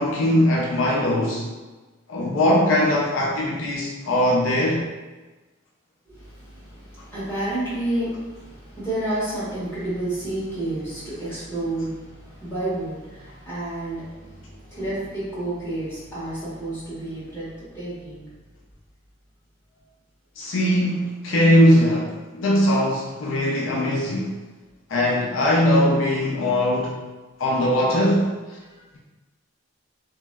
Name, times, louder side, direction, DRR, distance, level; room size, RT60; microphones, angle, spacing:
voice 1, 0.0-1.4 2.1-4.9 20.4-24.3 24.9-27.0 27.4-28.3, left 1 dB, 75° left, -3 dB, 0.5 m, -20 dB
voice 2, 6.1-18.3 28.7-28.8, right 1 dB, 10° left, -13 dB, 1.5 m, -30 dB
3.1 x 2.6 x 2.2 m, 1.2 s
head